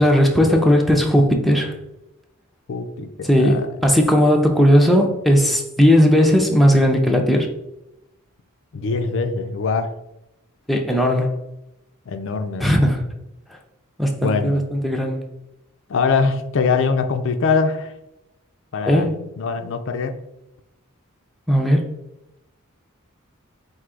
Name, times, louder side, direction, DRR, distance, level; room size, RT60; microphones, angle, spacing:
voice 1, 0.0-1.7 3.2-7.5 10.7-11.4 12.6-13.0 14.0-15.2 18.9-19.1 21.5-21.9, equal, ahead, 2 dB, 0.5 m, -17 dB
voice 2, 2.7-3.7 8.7-9.9 12.1-12.7 14.2-14.5 15.9-17.9 18.7-19.1 19.4-20.1, left 4 dB, 60° left, 7 dB, 0.4 m, -22 dB
4.6 x 2.7 x 3.7 m, 0.89 s
head